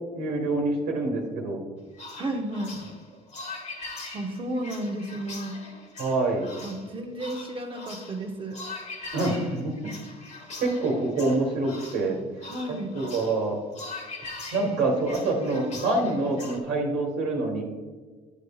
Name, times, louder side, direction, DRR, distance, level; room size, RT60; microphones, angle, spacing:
voice 1, 0.1-1.6 6.0-6.5 9.1-9.8 10.6-12.2 12.9-13.6 14.5-17.6, right 2 dB, 85° right, -1 dB, 1.4 m, -26 dB
sound 1, 1.9-16.6, left 3 dB, 45° left, 1.4 m, -42 dB
voice 2, 2.2-2.8 4.1-5.6 6.6-8.6 12.5-13.0 14.2-14.3 14.6-14.7, right 1 dB, 30° right, 3 dB, 0.8 m, -33 dB
9.2 x 5.3 x 2.3 m, 1.4 s
cardioid pair, 110°, 17 cm